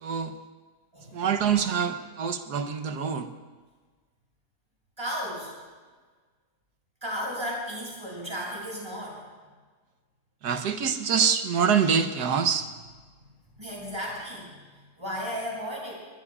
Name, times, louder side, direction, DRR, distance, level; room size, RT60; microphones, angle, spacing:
voice 1, 0.0-0.3 1.1-3.3 10.4-12.7, right 7 dB, 80° right, 8 dB, 1.5 m, -25 dB
voice 2, 5.0-5.5 7.0-9.2 13.1-13.2 13.6-14.5 15.0-15.9, equal, 15° right, -4 dB, 6.4 m, -34 dB
22.0 x 21.0 x 2.4 m, 1.4 s
omnidirectional pair, 1.7 m